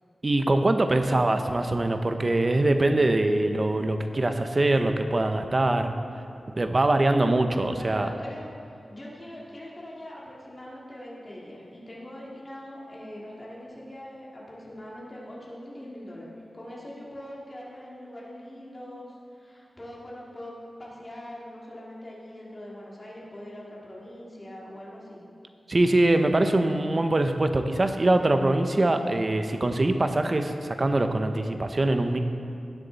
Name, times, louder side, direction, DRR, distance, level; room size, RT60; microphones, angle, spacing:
voice 1, 0.2-5.9 6.6-8.1 25.7-32.2, right 2 dB, 35° right, 7 dB, 0.7 m, -23 dB
voice 2, 7.6-25.2, left 1 dB, 25° left, -5 dB, 2.6 m, -42 dB
17.5 x 7.1 x 4.1 m, 2.4 s
wide cardioid pair, 120°, 0 cm